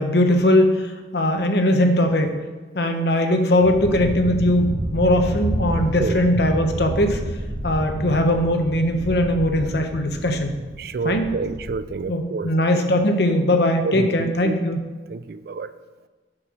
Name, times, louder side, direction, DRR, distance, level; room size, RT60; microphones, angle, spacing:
voice 1, 0.0-2.3 2.7-7.2 7.6-10.5 11.0-11.2 12.1-14.8, left 1 dB, 65° left, 5 dB, 0.9 m, -20 dB
sound 1, 3.6-11.9, right 1 dB, 80° right, 1.4 m, -30 dB
voice 2, 10.8-12.5 13.8-14.5 15.1-15.7, right 4 dB, 55° right, 13 dB, 0.3 m, -28 dB
8.7 x 4.7 x 6.2 m, 1.3 s
head